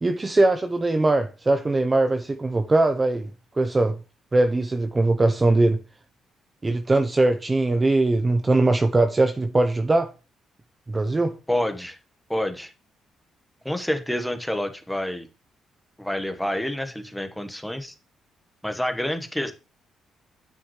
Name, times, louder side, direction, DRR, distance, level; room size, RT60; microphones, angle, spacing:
voice 1, 0.0-3.3 3.6-4.0 4.3-5.8 6.6-10.1 10.9-11.3, right 2 dB, 25° right, 0.8 m, -21 dB
voice 2, 11.5-12.0 12.3-12.7 13.6-15.3 16.0-17.9 18.6-19.5, left 1 dB, 5° left, 1.2 m, -28 dB
9.4 x 7.0 x 3.2 m
cardioid pair, 90°, 0 cm